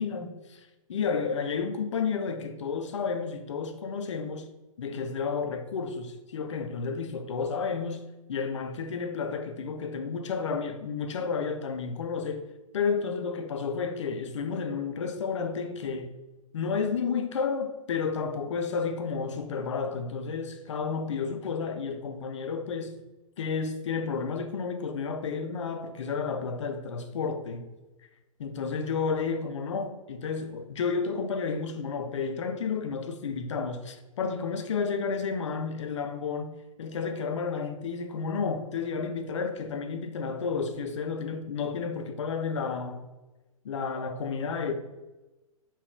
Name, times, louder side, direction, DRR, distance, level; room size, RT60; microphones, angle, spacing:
voice 1, 0.0-4.5 4.8-8.0 8.3-12.5 12.7-16.1 16.5-23.0 23.4-27.7 28.4-36.5 36.8-43.0 43.6-44.7, left 5 dB, 55° left, 0.4 m, -31 dB
3.7 x 2.3 x 3.3 m
figure-of-eight pair, 115°, 18 cm